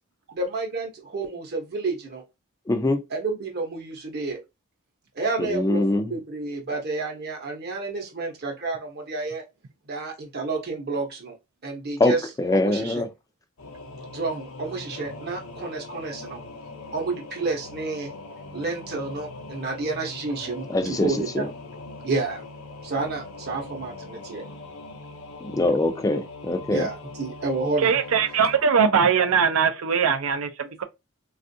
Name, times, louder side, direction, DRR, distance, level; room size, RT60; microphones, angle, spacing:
voice 1, 0.3-2.2 3.1-4.4 5.2-9.4 9.9-11.3 11.6-12.2 12.5-13.0 14.1-16.4 16.9-18.1 18.5-21.5 22.0-22.4 22.8-24.4 26.7-27.9, right 3 dB, 50° right, 0.8 m, -30 dB
voice 2, 2.7-3.0 5.4-6.1 12.0-13.1 20.7-21.5 25.4-26.9, left 2 dB, 15° left, 0.4 m, -23 dB
Singing / Musical instrument, 13.6-28.6, left 2 dB, 85° left, 0.6 m, -41 dB
voice 3, 27.8-30.8, right 6 dB, 80° right, 0.5 m, -21 dB
3.4 x 2.4 x 2.6 m
head